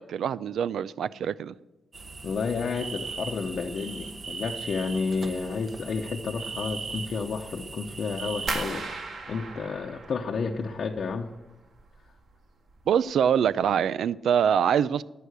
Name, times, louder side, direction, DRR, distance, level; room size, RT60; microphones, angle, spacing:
voice 1, 0.0-1.5 12.9-15.0, right 8 dB, 80° right, 18 dB, 0.4 m, -24 dB
sound 1, 1.9-8.6, right 4 dB, 35° right, 1.1 m, -39 dB
voice 2, 2.2-8.9 9.3-11.3, left 4 dB, 50° left, 0 dB, 0.9 m, -31 dB
sound 2, 8.5-11.3 11.6-12.3 12.7-13.1 13.5-13.7, right 3 dB, 55° right, 2.0 m, -37 dB
11.0 x 10.0 x 8.2 m, 1.1 s
wide cardioid pair, 160°, 0 cm